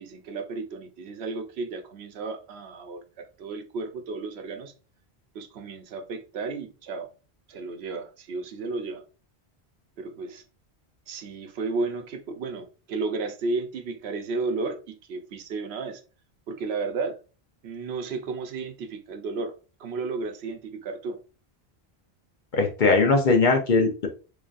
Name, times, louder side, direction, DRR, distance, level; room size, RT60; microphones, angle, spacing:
voice 1, 0.0-3.0 3.4-4.7 5.3-7.1 7.5-9.0 10.0-10.4 11.1-16.0 16.5-17.2 17.6-19.5 19.8-21.2, right 3 dB, 80° right, 0.9 m, -33 dB
voice 2, 22.5-24.1, left 3 dB, 50° left, 0.9 m, -20 dB
3.8 x 3.3 x 2.4 m
omnidirectional pair, 1.1 m